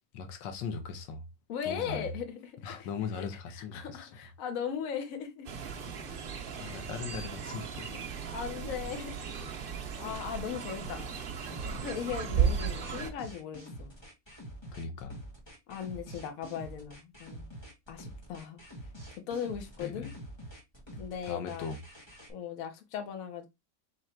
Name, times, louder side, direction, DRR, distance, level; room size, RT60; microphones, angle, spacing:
voice 1, 0.1-1.2 1.6-2.1 2.6-4.1 6.5-8.0 14.7-15.2 19.8-20.1 21.3-21.8, left 5 dB, 85° left, 1.4 m, -39 dB
voice 2, 1.5-5.5 6.6-6.8 8.3-9.3 9.5-9.6 10.0-11.3 11.6-13.9 15.7-17.5 17.9-18.6 19.3-20.1 21.0-21.7 22.3-23.5, left 8 dB, 55° left, 1.2 m, -38 dB
Fowl, 5.4-13.1, right 7 dB, 70° right, 0.5 m, -35 dB
sound 1, 10.8-22.3, right 1 dB, 15° left, 1.5 m, -47 dB
3.8 x 3.1 x 4.4 m
omnidirectional pair, 1.9 m